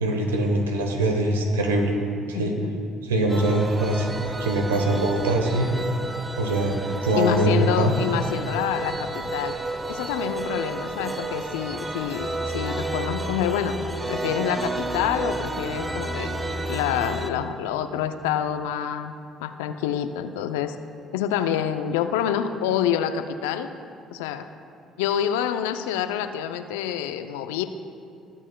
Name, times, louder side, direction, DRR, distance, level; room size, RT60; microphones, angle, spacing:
voice 1, 0.0-2.0 2.3-2.6 3.0-5.7 6.4-8.0, right 1 dB, 90° right, 3 dB, 1.0 m, -23 dB
sound 1, 3.3-17.3, right 2 dB, 20° right, 0.8 m, -31 dB
voice 2, 7.1-9.6 9.9-13.7 14.1-16.3 16.7-20.8 21.1-23.7 24.1-24.5 25.0-27.6, left 9 dB, 80° left, 9 dB, 0.4 m, -27 dB
20.5 x 7.2 x 2.3 m, 2.5 s
hypercardioid pair, 55°, 0 cm